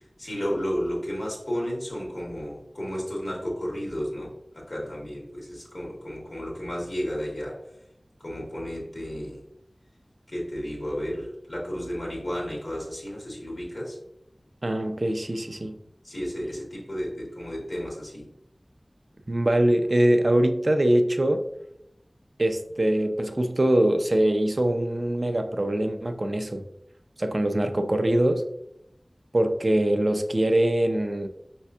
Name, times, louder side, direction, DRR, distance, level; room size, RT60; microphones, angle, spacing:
voice 1, 0.2-7.6 8.2-9.4 10.3-14.0 16.0-18.3, equal, 65° left, -3 dB, 1.7 m, -32 dB
voice 2, 14.6-15.8 19.3-21.5 22.4-26.6 27.2-28.4 29.3-31.3, right 1 dB, 50° right, 7 dB, 0.4 m, -23 dB
5.1 x 3.5 x 2.7 m, 0.79 s
wide cardioid pair, 55°, 0 cm